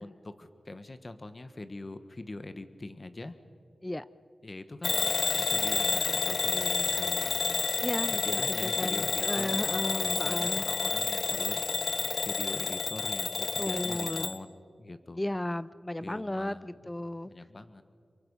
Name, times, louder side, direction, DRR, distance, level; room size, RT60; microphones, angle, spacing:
voice 1, 0.0-3.3 4.4-7.4 8.1-11.6 12.2-14.5 14.8-15.2 16.0-16.7 17.3-17.8, left 2 dB, 35° left, 10 dB, 1.4 m, -43 dB
Bell / Alarm, 4.8-14.4, left 5 dB, 75° left, 0.8 m, -30 dB
voice 2, 7.8-10.7 13.6-14.4 15.1-17.3, left 1 dB, 15° left, 17 dB, 0.5 m, -34 dB
27.5 x 23.5 x 5.6 m, 2.4 s
wide cardioid pair, 75°, 0 cm